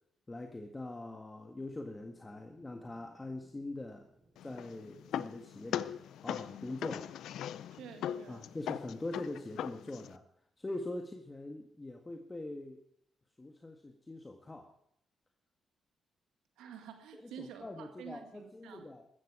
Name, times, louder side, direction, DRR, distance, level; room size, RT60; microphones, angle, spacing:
voice 1, 0.3-4.1 4.4-7.1 8.3-10.2 10.6-12.8 13.4-14.7 17.1-19.1, left 2 dB, 25° left, 4 dB, 1.7 m, -43 dB
sound 1, 1.5-8.8, right 1 dB, 5° right, 6.8 m, -67 dB
sound 2, 4.4-10.2, left 10 dB, 80° left, 0.5 m, -40 dB
voice 2, 7.7-8.5 16.6-18.9, right 8 dB, 85° right, 6 dB, 1.9 m, -49 dB
15.5 x 13.5 x 5.0 m, 0.70 s
supercardioid pair, 55°, 0 cm